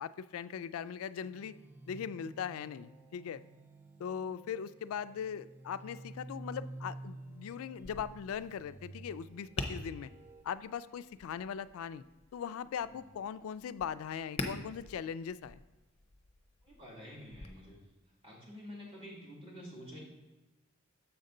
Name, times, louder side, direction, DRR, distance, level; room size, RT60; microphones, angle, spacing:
voice 1, 0.0-1.5 1.9-3.4 4.0-10.1 10.4-12.0 12.3-15.6, left 7 dB, 80° left, 14 dB, 0.3 m, -40 dB
sound 1, 1.2-10.4, right 2 dB, 10° right, 0.3 m, -51 dB
Tap, 7.8-17.5, left 2 dB, 30° left, 0.6 m, -46 dB
voice 2, 16.6-17.8 18.2-20.0, equal, 25° right, -5 dB, 2.3 m, -49 dB
7.2 x 5.4 x 3.8 m, 1.1 s
head